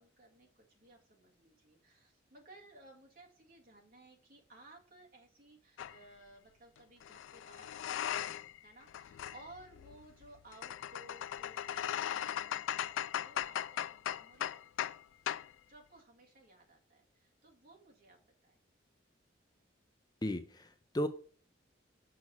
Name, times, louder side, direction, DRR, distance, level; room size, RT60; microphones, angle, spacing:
voice 1, 0.0-14.9 15.7-18.6, right 1 dB, 50° right, 0 dB, 2.0 m, -59 dB
sound 1, 5.8-6.0 7.0-8.6 8.9-15.0 15.3-15.5, left 10 dB, 90° left, 0.3 m, -38 dB
voice 2, 20.2-21.1, left 1 dB, 20° left, 9 dB, 0.5 m, -35 dB
6.3 x 6.1 x 5.6 m, 0.43 s
head